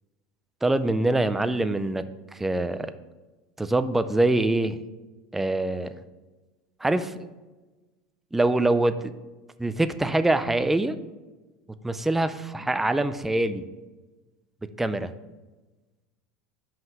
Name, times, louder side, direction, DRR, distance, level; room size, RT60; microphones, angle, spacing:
voice 1, 0.6-2.0 2.3-2.9 3.6-4.8 5.3-6.0 6.8-7.3 8.3-9.1 9.6-11.0 11.8-13.6 14.8-15.1, right 2 dB, 5° right, 11 dB, 0.3 m, -24 dB
5.8 x 5.4 x 6.0 m, 1.2 s
supercardioid pair, 140°, 4 cm